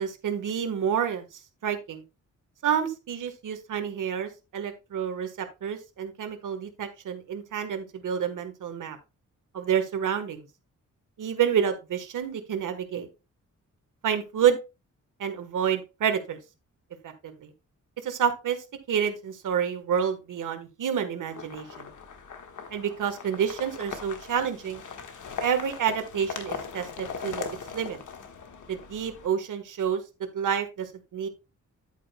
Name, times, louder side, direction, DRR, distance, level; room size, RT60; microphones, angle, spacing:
voice 1, 0.0-2.0 2.6-9.0 9.5-10.4 11.2-13.1 14.0-14.6 15.2-16.4 17.0-17.5 18.0-18.6 18.9-21.9 22.7-24.8 25.4-28.0 28.7-30.0 30.3-31.3, right 8 dB, 85° right, 8 dB, 1.4 m, -29 dB
sound 1, 21.3-29.3, left 6 dB, 80° left, 1.4 m, -39 dB
10.0 x 8.5 x 2.2 m, 0.27 s
wide cardioid pair, 110°, 30 cm